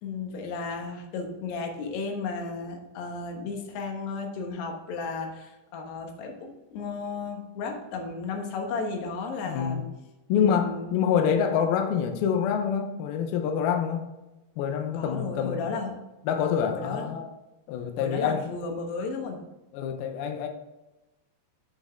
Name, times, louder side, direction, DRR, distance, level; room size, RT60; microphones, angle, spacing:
voice 1, 0.0-9.9 10.4-10.9 14.9-16.0 16.7-17.1 18.0-19.4, left 4 dB, 70° left, 2 dB, 3.1 m, -34 dB
voice 2, 9.4-9.8 10.3-14.0 14.6-15.6 16.3-17.3 17.7-18.4 19.7-20.5, left 7 dB, 90° left, 5 dB, 2.2 m, -26 dB
8.8 x 6.4 x 3.5 m, 1.0 s
omnidirectional pair, 5.3 m